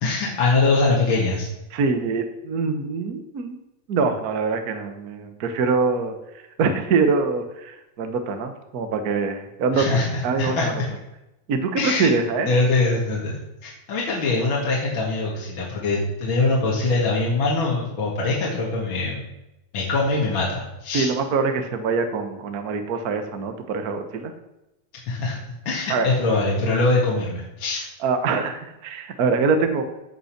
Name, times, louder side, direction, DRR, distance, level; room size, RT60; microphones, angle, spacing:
voice 1, 0.0-1.5 9.7-10.7 11.8-12.1 12.5-19.2 19.7-21.1 25.1-25.4 25.7-27.8, left 3 dB, 45° left, -4 dB, 2.4 m, -23 dB
voice 2, 1.7-3.6 3.9-9.9 10.2-10.8 11.5-12.5 20.9-24.3 25.9-26.1 28.0-29.8, right 4 dB, 75° right, 7 dB, 0.8 m, -24 dB
15.0 x 5.5 x 5.9 m, 0.94 s
omnidirectional pair, 3.4 m